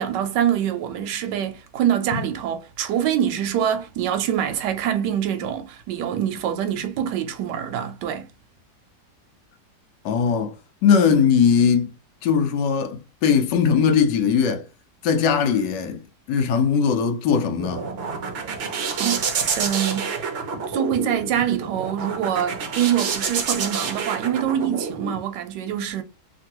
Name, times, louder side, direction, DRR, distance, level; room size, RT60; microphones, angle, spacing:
voice 1, 0.0-8.3 19.0-19.3 19.5-20.1 20.7-26.0, right 10 dB, 90° right, 1.2 m, -25 dB
voice 2, 10.0-10.6 10.8-11.9 12.2-14.6 15.0-16.0 16.3-17.9, left 6 dB, 90° left, 1.2 m, -20 dB
sound 1, 17.3-25.2, right 5 dB, 65° right, 0.6 m, -28 dB
3.0 x 2.5 x 2.8 m
omnidirectional pair, 1.8 m